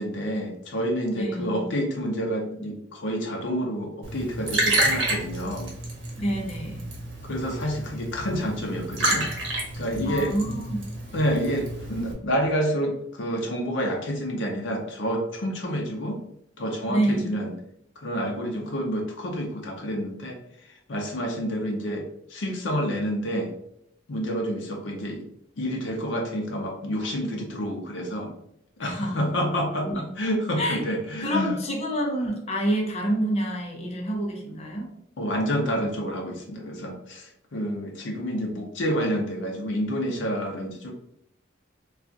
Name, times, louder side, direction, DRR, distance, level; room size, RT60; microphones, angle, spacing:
voice 1, 0.0-5.7 7.2-9.3 9.8-10.3 11.1-16.2 16.6-17.5 18.0-20.4 20.9-23.5 24.1-25.2 25.6-28.3 28.8-31.5 35.2-40.9, equal, 75° left, 1 dB, 0.6 m, -28 dB
voice 2, 1.1-1.7 6.2-6.9 10.0-10.8 16.9-17.4 28.8-30.1 30.6-30.8 31.2-34.9, equal, 35° left, 0 dB, 0.6 m, -28 dB
Liquid, 4.0-12.1, right 2 dB, 80° right, 0.9 m, -29 dB
2.4 x 2.3 x 3.8 m, 0.75 s
head